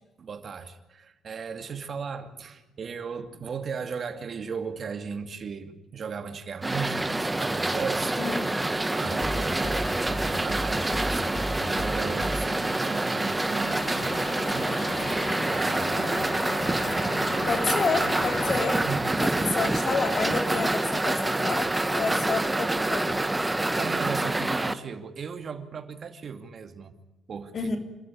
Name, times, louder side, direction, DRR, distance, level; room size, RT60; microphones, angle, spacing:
voice 1, 0.2-7.1 7.4-8.2 8.7-15.2 15.5-16.3 18.8-19.0 23.7-26.9 27.3-27.7, right 6 dB, 50° right, 8 dB, 2.4 m, -36 dB
sound 1, 6.6-24.7, right 2 dB, 15° right, 1.3 m, -27 dB
voice 2, 8.2-8.5 17.5-18.8 19.2-23.2 27.5-27.8, left 4 dB, 50° left, 5 dB, 3.5 m, -29 dB
sound 2, 9.0-17.6 17.9-18.0, left 1 dB, 30° left, 3.6 m, -38 dB
sound 3, 13.6-18.8, left 10 dB, 85° left, 1.1 m, -38 dB
27.5 x 13.5 x 9.7 m, 1.1 s
cardioid pair, 90°, 0 cm